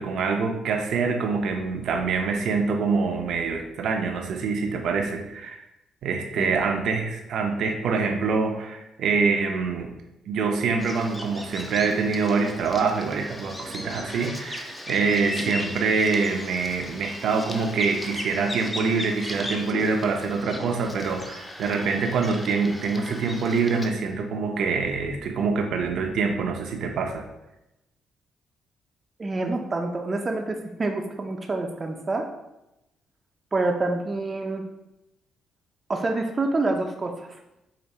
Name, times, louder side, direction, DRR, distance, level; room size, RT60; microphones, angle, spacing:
voice 1, 0.0-5.6 6.0-9.9 10.2-27.3, right 4 dB, 70° right, 4 dB, 0.6 m, -25 dB
Bird vocalization bird call bird song, 10.8-23.9, left 1 dB, 15° left, 0.6 m, -37 dB
voice 2, 29.2-32.3 33.5-34.6 35.9-37.3, right 2 dB, 30° right, 3 dB, 0.5 m, -27 dB
5.0 x 2.6 x 4.1 m, 0.92 s
cardioid pair, 90°, 0 cm